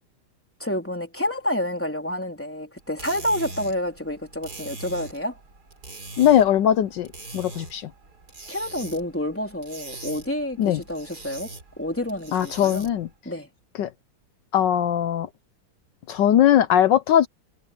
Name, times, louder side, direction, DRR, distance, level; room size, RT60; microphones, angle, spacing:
voice 1, 0.6-5.4 8.5-12.9 13.3-13.5, left 1 dB, 5° left, 3.8 m, -29 dB
sound 1, 2.8-13.1, right 2 dB, 45° right, 4.6 m, -42 dB
voice 2, 6.2-7.1 7.3-7.9 10.6-10.8 12.3-13.1 13.8-13.9 14.5-15.3 16.1-17.3, left 10 dB, 70° left, 1.2 m, -19 dB
omnidirectional pair, 2.4 m